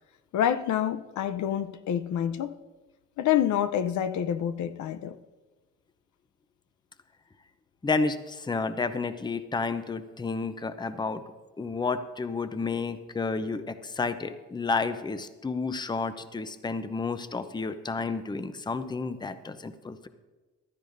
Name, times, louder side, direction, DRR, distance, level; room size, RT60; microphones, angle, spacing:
voice 1, 0.3-2.5 3.2-5.2, left 10 dB, 70° left, 0.7 m, -27 dB
voice 2, 7.8-11.2 11.6-20.1, left 4 dB, 15° left, 0.6 m, -31 dB
15.0 x 12.5 x 2.6 m
cardioid pair, 90°, 30 cm